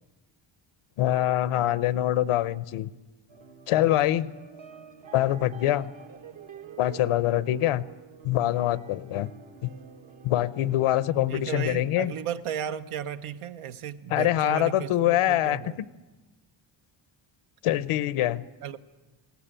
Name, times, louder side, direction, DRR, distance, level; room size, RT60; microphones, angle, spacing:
voice 1, 1.0-2.9 3.7-4.3 5.1-5.9 6.8-7.8 8.2-9.3 9.6-9.7 10.2-12.1 14.1-15.9 17.6-18.4, left 13 dB, 90° left, 18 dB, 0.8 m, -24 dB
sound 1, 3.3-11.9, right 7 dB, 65° right, 1.7 m, -48 dB
voice 2, 11.3-15.8 18.6-18.8, right 9 dB, 85° right, 11 dB, 1.0 m, -35 dB
20.0 x 17.5 x 9.0 m, 1.2 s
cardioid pair, 125°, 50 cm